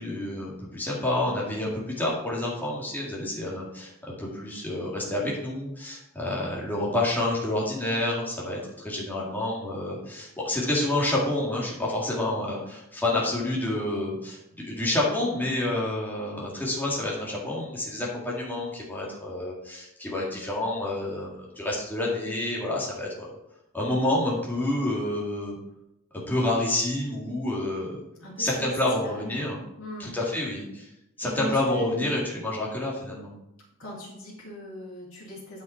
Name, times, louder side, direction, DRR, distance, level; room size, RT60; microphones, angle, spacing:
voice 1, 0.0-23.3 23.7-25.6 26.1-28.0 28.4-29.6 30.0-30.9 31.2-33.3, left 1 dB, 10° left, -5 dB, 2.1 m, -28 dB
voice 2, 28.2-29.5 29.8-30.1 31.2-32.1 33.8-35.6, equal, 70° left, -6 dB, 2.6 m, -39 dB
9.3 x 5.7 x 4.4 m, 0.84 s
head